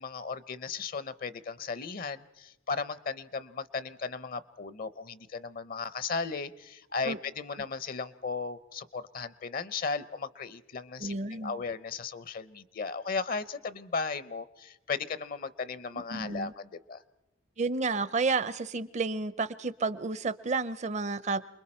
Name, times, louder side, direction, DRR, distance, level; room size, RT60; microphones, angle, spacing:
voice 1, 0.0-17.0, left 4 dB, 45° left, 15 dB, 0.6 m, -36 dB
voice 2, 11.0-11.6 16.1-16.5 17.6-21.4, right 3 dB, 35° right, 16 dB, 0.6 m, -31 dB
28.5 x 21.5 x 4.3 m, 0.90 s
head